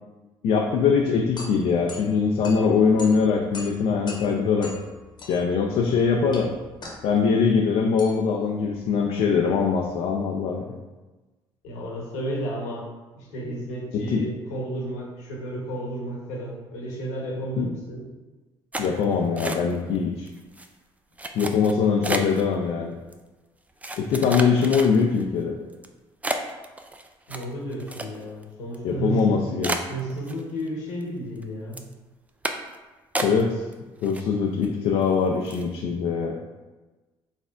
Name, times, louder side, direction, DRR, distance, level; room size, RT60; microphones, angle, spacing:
voice 1, 0.4-4.7 5.3-6.5 7.0-10.7 13.9-14.2 17.6-17.7 18.8-20.3 21.3-22.9 24.0-25.5 28.8-29.7 33.2-33.6 34.0-36.4, left 5 dB, 65° left, 1 dB, 0.4 m, -22 dB
sound 1, 0.9-10.0, left 2 dB, 40° left, 0.9 m, -43 dB
voice 2, 11.6-12.8 13.2-18.0 27.3-29.4 29.9-31.8, right 1 dB, 80° left, -3 dB, 1.0 m, -32 dB
sound 2, 18.7-20.0 20.3-20.7 21.2-22.4 23.1-23.2 23.8-25.2 25.7-25.9 26.2-28.4 28.7-28.8 29.2-29.3 29.6-30.7 31.0-31.4 31.7-31.9 32.4-32.8 33.1-33.7 34.0-34.7 35.0-35.1 35.5-35.7, right 2 dB, 10° right, 0.4 m, -31 dB
4.2 x 3.4 x 2.5 m, 1.2 s
hypercardioid pair, 65°, 11 cm